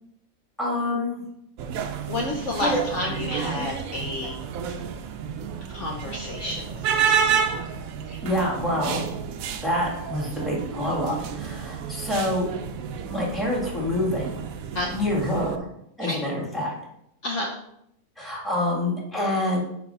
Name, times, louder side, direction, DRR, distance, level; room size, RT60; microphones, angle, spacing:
voice 1, 0.6-1.2 2.6-2.8 8.2-9.1 9.6-12.5 13.0-14.4 14.9-15.6 16.0-16.7 18.2-19.6, left 1 dB, ahead, -4 dB, 1.5 m, -26 dB
sound 1, 1.6-15.6, right 7 dB, 75° right, 1.0 m, -30 dB
voice 2, 2.1-4.4 5.7-7.3 8.1-8.2 14.7-14.9 16.0-16.2 17.2-17.6, left 2 dB, 60° left, -1 dB, 1.0 m, -30 dB
4.5 x 4.3 x 5.4 m, 0.75 s
omnidirectional pair, 1.5 m